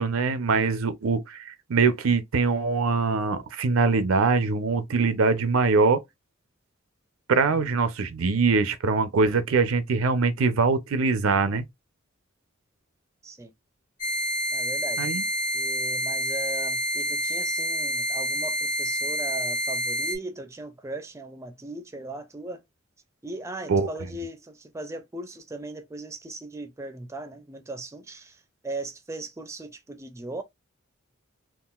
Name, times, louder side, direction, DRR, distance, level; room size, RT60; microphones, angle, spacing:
voice 1, 0.0-6.0 7.3-11.7 15.0-15.2 23.7-23.9, right 4 dB, 85° right, 0.5 m, -23 dB
sound 1, 14.0-20.1, equal, 40° left, 0.8 m, -28 dB
voice 2, 14.5-15.1 15.5-22.6 23.2-30.4, right 2 dB, 15° right, 0.4 m, -38 dB
3.7 x 2.4 x 2.3 m
head